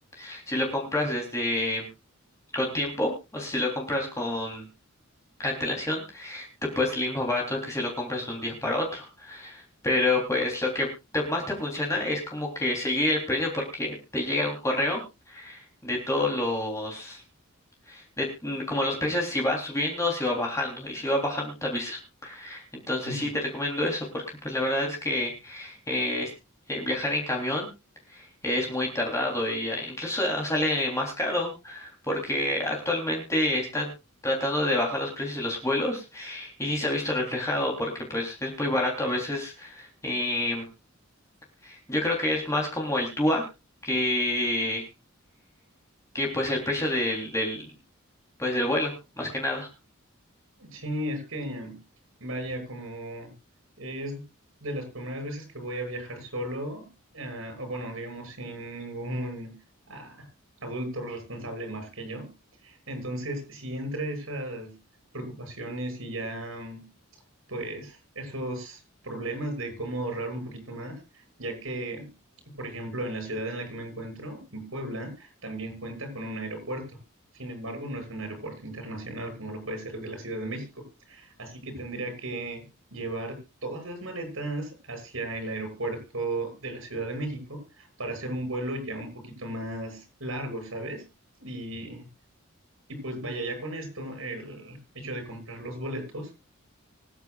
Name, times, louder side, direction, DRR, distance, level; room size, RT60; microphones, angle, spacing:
voice 1, 0.2-1.9 2.5-4.6 5.4-6.5 6.7-15.0 15.3-17.2 17.9-26.3 26.7-27.7 28.1-33.9 34.2-40.7 41.6-43.4 43.8-44.8 46.1-47.6 48.4-49.7, left 1 dB, 15° left, 0 dB, 3.4 m, -28 dB
voice 2, 50.6-51.8 52.2-53.3 53.8-54.2 54.6-56.9 57.1-59.6 59.9-60.3 60.6-62.3 62.6-64.7 65.1-66.9 67.5-72.1 72.6-77.0 77.3-82.6 82.9-83.4 83.6-91.0 91.4-92.1 92.9-96.3, right 1 dB, 70° right, 4 dB, 6.7 m, -35 dB
25.5 x 9.7 x 2.4 m, 0.28 s
head